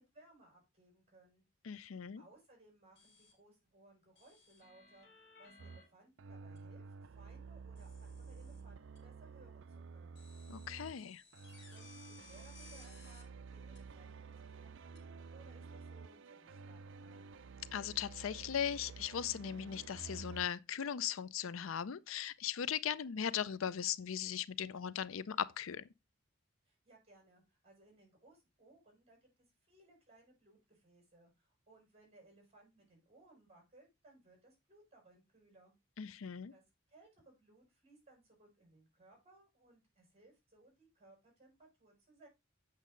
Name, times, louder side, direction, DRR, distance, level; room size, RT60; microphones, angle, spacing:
voice 1, 0.0-1.4 2.2-10.2 11.7-17.2 26.6-35.7 36.5-36.6 36.9-42.3, right 2 dB, 30° right, 6.2 m, -64 dB
voice 2, 1.6-2.2 10.5-11.2 17.7-25.8 36.0-36.5, left 8 dB, 80° left, 0.5 m, -38 dB
sound 1, 3.0-3.3 4.2-5.8 6.6-6.7 7.8-8.6 9.0-9.1 10.1-13.2 13.7-13.8 14.9-15.0, left 3 dB, 60° left, 4.8 m, -60 dB
sound 2, 5.6-5.9 6.2-11.0 11.3-20.5, right 4 dB, 65° right, 0.5 m, -51 dB
8.2 x 6.4 x 3.8 m
head